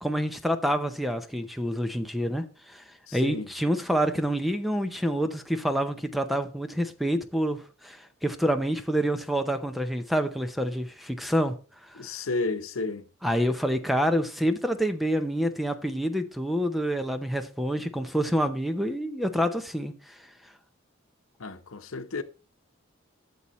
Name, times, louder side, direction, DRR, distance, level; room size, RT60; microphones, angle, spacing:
voice 1, 0.0-2.8 3.1-11.6 13.2-20.1, equal, ahead, 0.7 m, -27 dB
voice 2, 3.1-3.5 11.9-13.0 21.4-22.2, left 3 dB, 85° left, 0.9 m, -32 dB
12.5 x 7.1 x 3.1 m
head